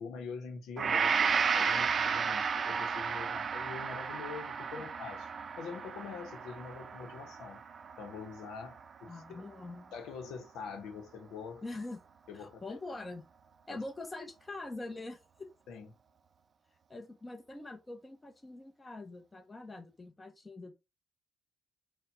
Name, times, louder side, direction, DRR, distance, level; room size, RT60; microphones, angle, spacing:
voice 1, 0.0-5.2 5.6-7.6 8.0-9.4 9.9-11.6 12.3-12.8 13.7-13.8 15.7-15.9, left 5 dB, 85° left, 0.8 m, -44 dB
Gong, 0.8-9.1 9.5-9.7, right 6 dB, 45° right, 0.4 m, -33 dB
voice 2, 9.1-9.9 11.6-12.0 12.3-13.2 13.7-15.5 16.9-20.7, left 2 dB, 20° left, 0.8 m, -44 dB
4.3 x 2.2 x 4.0 m
cardioid pair, 90°, 0 cm